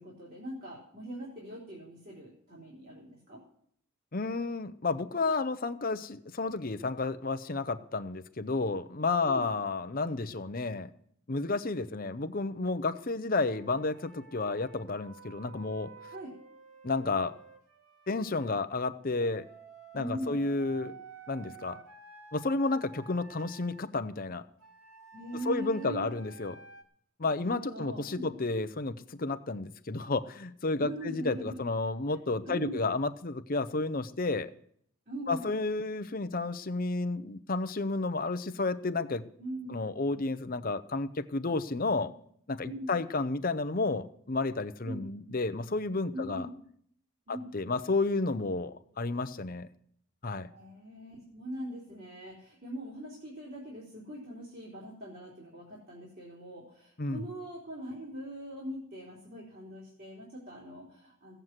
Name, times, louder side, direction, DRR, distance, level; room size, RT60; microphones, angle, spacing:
voice 1, 0.0-3.4 9.2-9.4 16.1-16.3 20.0-20.8 25.1-26.1 27.2-28.3 30.8-31.6 32.5-32.8 35.1-35.6 39.4-39.8 42.6-42.9 44.8-45.1 46.1-46.5 47.3-47.5 50.4-61.4, equal, 40° right, -4 dB, 3.6 m, -41 dB
voice 2, 4.1-10.9 11.3-15.9 16.8-17.3 18.1-19.4 19.9-20.9 21.3-21.8 22.3-24.4 25.4-26.6 27.2-34.5 35.3-39.2 39.7-42.1 42.5-46.5 47.3-49.7 50.2-50.5 57.0-57.2, left 3 dB, 40° left, 11 dB, 0.7 m, -31 dB
Wind instrument woodwind instrument, 13.4-18.5 19.2-23.8 24.6-26.8, right 5 dB, 70° right, 2.3 m, -52 dB
16.5 x 7.9 x 7.5 m, 0.66 s
head